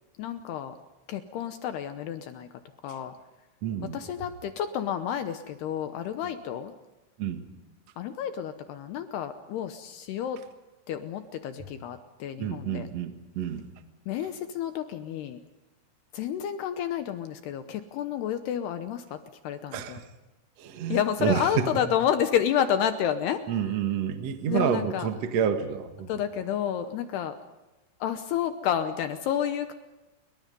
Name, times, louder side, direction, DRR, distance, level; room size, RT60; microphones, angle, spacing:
voice 1, 0.2-0.7 1.1-2.5 2.8-3.1 3.9-6.7 8.0-10.4 10.9-12.9 14.1-15.4 16.1-19.2 19.4-20.0 20.9-23.4 24.5-25.1 26.1-27.4 28.0-29.7, left 9 dB, 75° left, 9 dB, 2.6 m, -30 dB
voice 2, 3.6-4.0 7.2-7.5 12.4-13.7 19.7-20.1 20.6-21.7 23.5-26.1, right 8 dB, 65° right, 7 dB, 1.6 m, -29 dB
29.0 x 22.5 x 5.4 m, 1.0 s
omnidirectional pair, 5.6 m